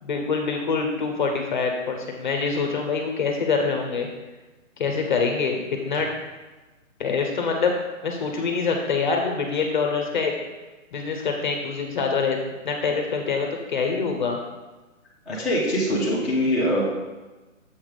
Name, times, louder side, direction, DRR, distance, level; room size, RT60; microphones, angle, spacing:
voice 1, 0.0-4.1 4.8-5.6 5.8-6.1 7.0-7.7 8.0-10.3 10.9-12.4 12.6-14.4, left 5 dB, 35° left, 3 dB, 0.9 m, -25 dB
voice 2, 15.3-16.8, equal, ahead, -14 dB, 0.9 m, -23 dB
7.2 x 3.5 x 6.4 m, 1.2 s
hypercardioid pair, 160°, 40 cm